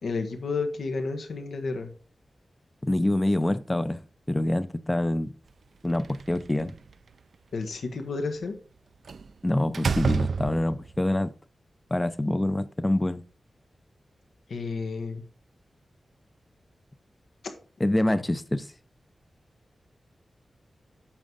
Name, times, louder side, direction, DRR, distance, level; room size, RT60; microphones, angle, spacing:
voice 1, 0.0-1.9 7.5-8.6 14.5-15.2 17.4-17.5, left 4 dB, 90° left, 1.5 m, -31 dB
voice 2, 2.8-5.3 5.8-6.7 9.4-11.3 11.9-13.2 17.8-18.7, left 1 dB, 15° left, 0.5 m, -26 dB
Slam, 5.9-6.9 9.1-9.3 9.7-11.0, right 5 dB, 70° right, 0.4 m, -29 dB
8.9 x 6.2 x 3.9 m
wide cardioid pair, 170°, 0 cm